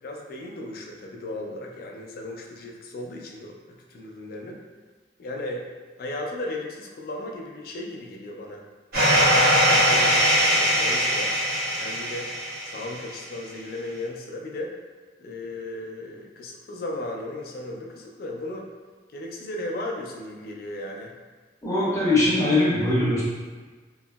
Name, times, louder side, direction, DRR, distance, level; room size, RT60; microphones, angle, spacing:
voice 1, 0.0-4.6 5.2-5.6 6.0-8.6 9.1-11.3 11.8-12.3 12.6-14.7 15.2-18.7 19.1-21.1, left 1 dB, 55° left, 0 dB, 0.3 m, -36 dB
sound 1, 8.9-13.0, equal, 55° right, 1.3 m, -21 dB
voice 2, 21.6-23.2, left 2 dB, 15° left, -9 dB, 0.8 m, -21 dB
2.9 x 2.6 x 2.2 m, 1.4 s
head